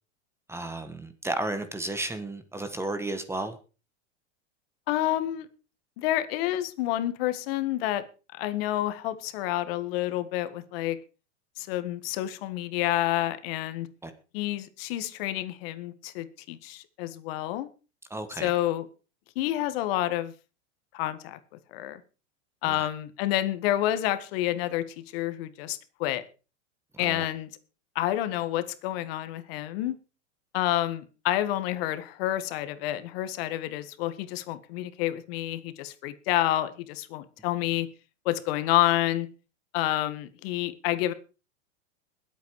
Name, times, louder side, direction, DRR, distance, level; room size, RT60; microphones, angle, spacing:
voice 1, 0.5-3.6 14.0-14.1 18.1-18.5 22.7-22.9 27.0-27.3, right 2 dB, 5° right, 1.4 m, -33 dB
voice 2, 4.9-5.5 6.0-8.0 8.3-11.0 11.6-13.9 14.3-17.7 18.3-18.9 19.4-20.3 20.9-21.4 21.7-22.0 22.6-26.2 27.0-27.5 28.0-30.0 30.5-37.9 38.3-39.3 39.7-41.1, left 14 dB, 55° left, 1.6 m, -29 dB
21.0 x 8.4 x 4.7 m
supercardioid pair, 140°, 35 cm